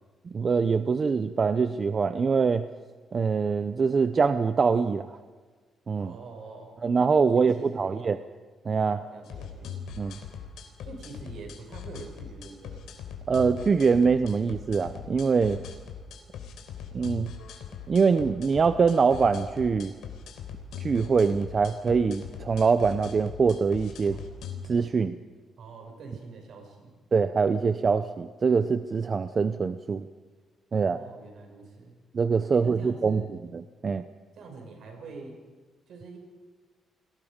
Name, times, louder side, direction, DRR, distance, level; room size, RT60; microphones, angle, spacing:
voice 1, 0.2-2.7 3.1-5.1 5.9-6.1 6.8-8.2 8.6-9.0 10.0-10.2 13.3-15.6 16.9-17.3 17.9-19.9 20.8-24.2 24.6-25.2 27.1-30.1 30.7-31.0 32.1-33.3 33.5-34.1, right 5 dB, 30° right, 11 dB, 0.6 m, -24 dB
voice 2, 6.0-6.7 7.3-8.1 8.8-9.7 10.8-12.8 24.0-24.2 25.6-26.9 30.8-31.9 32.5-33.3 34.4-35.4 35.9-36.2, right 4 dB, 60° right, 2 dB, 6.4 m, -45 dB
sound 1, 9.2-24.7, left 7 dB, 90° left, 3.5 m, -41 dB
30.0 x 21.0 x 5.2 m, 1.5 s
cardioid pair, 160°, 0 cm